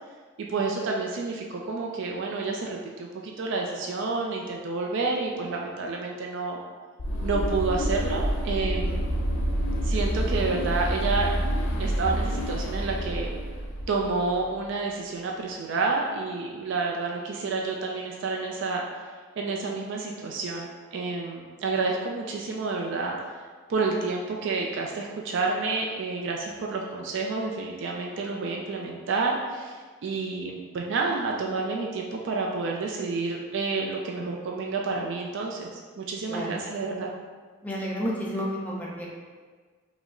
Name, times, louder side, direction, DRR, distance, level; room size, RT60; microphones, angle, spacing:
voice 1, 0.4-6.6 7.2-9.0 9.8-11.3 11.8-13.3 13.9-18.8 19.4-23.3 23.7-37.1, right 3 dB, 60° right, 0 dB, 0.4 m, -29 dB
sound 1, 7.0-14.4, equal, 80° left, 0.7 m, -28 dB
voice 2, 37.6-39.1, equal, 10° left, -5 dB, 0.7 m, -31 dB
4.9 x 2.1 x 3.6 m, 1.5 s
head